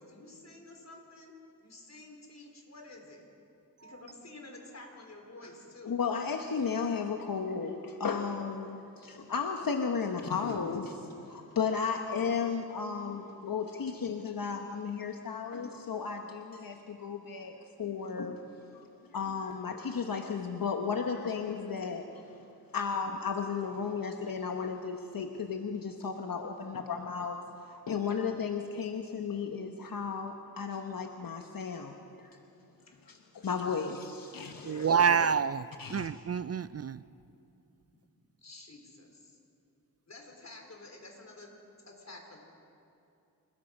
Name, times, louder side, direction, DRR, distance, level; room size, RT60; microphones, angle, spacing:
voice 1, 0.0-1.3 1.6-3.2 3.8-6.0 10.4-10.8 32.9-33.0 33.6-33.8 34.7-35.2 38.4-39.4 40.1-41.5 41.9-42.4, left 2 dB, 45° left, 1 dB, 4.3 m, -49 dB
voice 2, 5.9-10.8 11.2-17.5 17.8-18.4 18.7-18.8 19.1-22.5 22.7-32.3 33.1-34.9 35.8-36.1, left 5 dB, 65° left, 4 dB, 1.2 m, -34 dB
voice 3, 34.6-37.0, right 6 dB, 45° right, 15 dB, 0.4 m, -28 dB
27.0 x 20.0 x 5.4 m, 2.7 s
wide cardioid pair, 85°, 36 cm